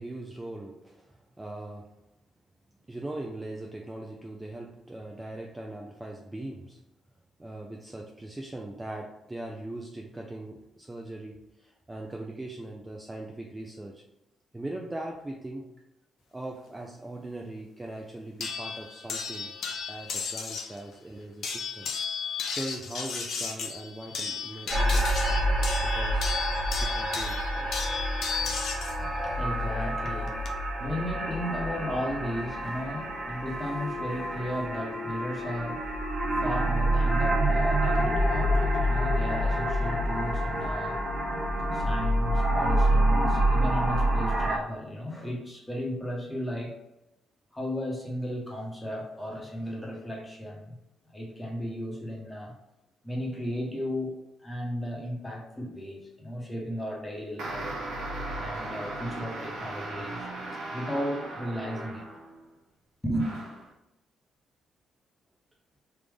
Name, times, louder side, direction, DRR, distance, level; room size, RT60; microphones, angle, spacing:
voice 1, 0.0-1.9 2.9-6.8 7.4-14.0 14.5-15.7 16.3-19.5 19.9-21.9 22.5-26.3 26.8-27.7 28.4-28.5 49.6-49.8, right 1 dB, 15° right, 0 dB, 0.5 m, -40 dB
sound 1, 18.4-20.8 21.4-29.0 30.1-30.5, left 5 dB, 70° left, 0.6 m, -34 dB
sound 2, 24.7-44.6, right 1 dB, 35° right, 0.8 m, -27 dB
voice 2, 29.0-41.1 41.7-46.8 47.5-50.7 51.1-52.5 53.0-54.1 54.4-57.9 58.4-60.3 60.7-62.1 63.0-63.3, equal, 10° left, -1 dB, 1.1 m, -35 dB
sound 3, 57.4-62.4 63.1-63.7, right 2 dB, 85° right, 1.0 m, -37 dB
3.4 x 2.5 x 3.4 m, 0.92 s
cardioid pair, 90°, 0 cm